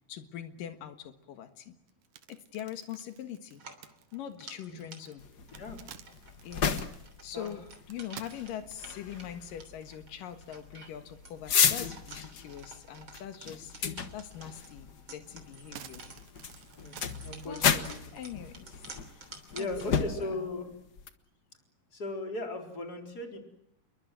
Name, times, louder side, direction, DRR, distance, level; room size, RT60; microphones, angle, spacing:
voice 1, 0.1-1.8 2.3-3.6 4.1-5.2 6.4-6.7 7.2-7.6 7.9-16.0 16.9-17.1 17.5-19.2 19.6-20.5, left 10 dB, 85° left, 8 dB, 3.2 m, -43 dB
sound 1, 1.9-9.1 9.7-9.8 10.2-10.3 10.6-11.4 11.8-12.8 13.1-13.2 14.6-14.7 15.1-17.6, right 10 dB, 85° right, 3.0 m, -52 dB
sound 2, 3.5-20.3, right 3 dB, 40° right, 3.9 m, -52 dB
sound 3, 5.2-21.1, left 7 dB, 55° left, 1.1 m, -34 dB
voice 2, 17.2-18.0 19.5-20.7 21.9-23.4, left 2 dB, 30° left, 4 dB, 4.4 m, -37 dB
29.0 x 22.5 x 7.7 m, 0.80 s
omnidirectional pair, 3.8 m